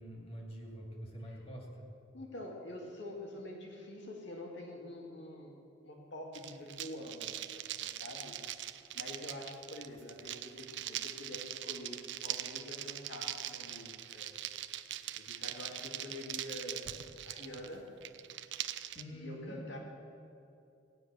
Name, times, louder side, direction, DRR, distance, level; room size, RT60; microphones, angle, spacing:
voice 1, 0.0-1.9 18.9-19.7, equal, 30° left, 0 dB, 2.6 m, -46 dB
voice 2, 2.1-5.6 5.8-8.4 8.9-14.3 14.8-17.9 19.1-19.8, left 1 dB, 65° left, 0 dB, 2.2 m, -46 dB
sound 1, 6.3-19.0, right 12 dB, 65° right, 0.6 m, -42 dB
16.5 x 10.0 x 6.7 m, 2.7 s
head